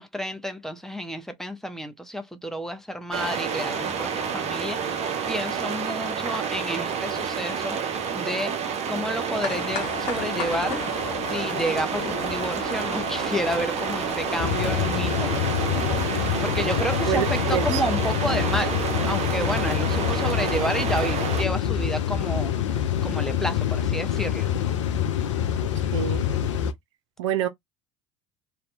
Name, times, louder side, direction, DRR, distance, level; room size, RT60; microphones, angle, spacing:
voice 1, 0.0-8.6 8.9-10.8 11.2-15.3 16.4-18.8 19.1-22.6 23.0-24.5, equal, 5° left, 0.7 m, -30 dB
sound 1, 3.1-21.4, right 6 dB, 45° right, 0.7 m, -29 dB
sound 2, 9.3-14.7, left 6 dB, 55° left, 0.9 m, -35 dB
sound 3, 14.4-26.7, left 9 dB, 80° left, 0.5 m, -26 dB
voice 2, 17.0-17.8 25.9-26.2 27.2-27.5, right 10 dB, 75° right, 0.4 m, -26 dB
2.7 x 2.1 x 2.6 m
hypercardioid pair, 70°, 16 cm